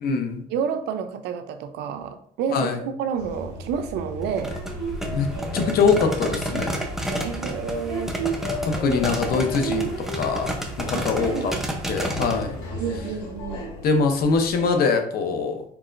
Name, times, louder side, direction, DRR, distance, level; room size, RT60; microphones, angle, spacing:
voice 1, 0.0-0.4 2.5-2.8 5.1-5.3 5.5-6.8 8.8-9.9 10.2-11.5 11.9-12.6 13.8-15.6, left 5 dB, 65° left, 5 dB, 0.8 m, -23 dB
voice 2, 0.5-4.6 7.2-8.2 10.9-11.9 12.8-13.7, right 7 dB, 85° right, 8 dB, 0.6 m, -30 dB
sound 1, 3.2-14.8, right 1 dB, 90° left, 2.0 m, -33 dB
sound 2, 4.2-12.4, right 1 dB, ahead, 0.7 m, -31 dB
4.6 x 4.2 x 2.6 m, 0.66 s
cardioid pair, 110°, 17 cm